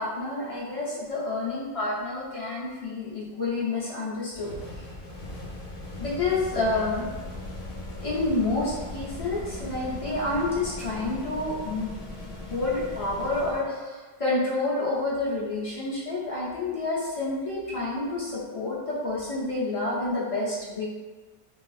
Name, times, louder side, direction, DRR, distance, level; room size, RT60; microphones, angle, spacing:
voice 1, 0.0-4.9 6.0-7.1 8.0-11.9 12.5-20.9, left 2 dB, 35° left, -8 dB, 0.7 m, -29 dB
sound 1, 4.3-13.7, left 1 dB, 60° left, 1.0 m, -38 dB
3.4 x 2.4 x 2.4 m, 1.3 s
omnidirectional pair, 1.0 m